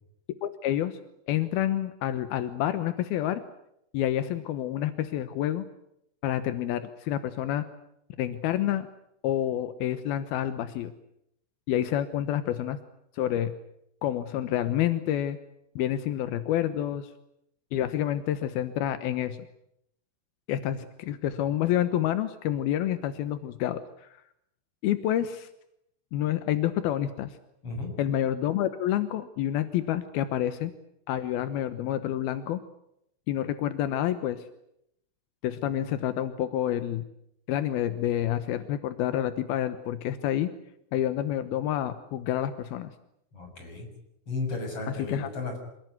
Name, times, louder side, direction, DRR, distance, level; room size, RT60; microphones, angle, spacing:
voice 1, 0.4-1.0 1.3-3.4 3.9-5.6 6.2-7.7 8.2-8.9 9.2-10.9 11.7-12.8 13.1-13.5 14.0-15.4 15.8-17.1 17.7-19.4 20.5-24.1 24.8-25.5 26.1-27.4 28.0-30.7 31.1-32.6 33.3-34.4 35.4-37.0 37.5-40.5 40.9-42.9 45.0-45.3, left 11 dB, 75° left, 11 dB, 2.3 m, -28 dB
voice 2, 43.3-43.9 44.3-45.6, left 3 dB, 25° left, 4 dB, 7.5 m, -34 dB
27.5 x 19.5 x 9.6 m, 0.78 s
omnidirectional pair, 5.9 m